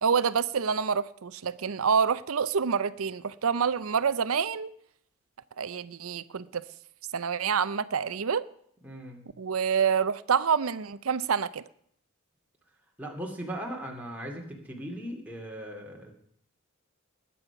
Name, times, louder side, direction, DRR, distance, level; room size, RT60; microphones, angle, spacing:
voice 1, 0.0-4.7 5.6-6.6 7.1-8.4 9.4-11.6, right 6 dB, 85° right, 15 dB, 0.6 m, -27 dB
voice 2, 8.8-9.2 13.0-16.1, right 1 dB, 5° right, -1 dB, 2.3 m, -38 dB
20.0 x 8.6 x 5.8 m, 0.67 s
head